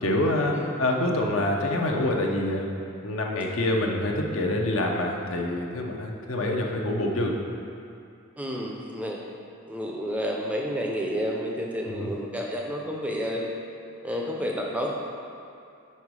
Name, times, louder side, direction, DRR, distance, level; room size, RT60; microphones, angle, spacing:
voice 1, 0.0-2.7 3.0-7.3 11.9-12.1, left 1 dB, 65° left, 1 dB, 0.7 m, -26 dB
voice 2, 8.4-9.2 9.7-13.5 14.0-14.9, equal, 5° right, -1 dB, 0.5 m, -30 dB
5.6 x 5.1 x 4.7 m, 2.5 s
head